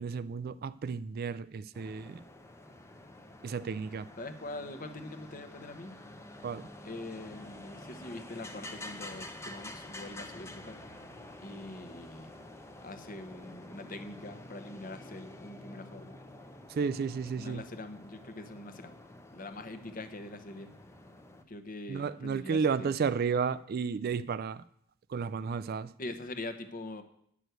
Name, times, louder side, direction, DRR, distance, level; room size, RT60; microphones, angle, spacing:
voice 1, 0.0-2.2 3.4-4.1 6.4-6.7 16.7-17.6 21.9-24.6 25.1-25.9, right 5 dB, 45° right, 15 dB, 0.3 m, -32 dB
sound 1, 1.7-21.4, left 1 dB, 10° left, 0.7 m, -48 dB
voice 2, 4.2-6.0 6.8-10.8 11.4-12.4 12.8-16.2 17.4-18.9 19.3-20.7 21.5-23.0 26.0-27.0, left 2 dB, 40° left, 9 dB, 0.9 m, -43 dB
9.2 x 6.1 x 8.0 m, 0.68 s
head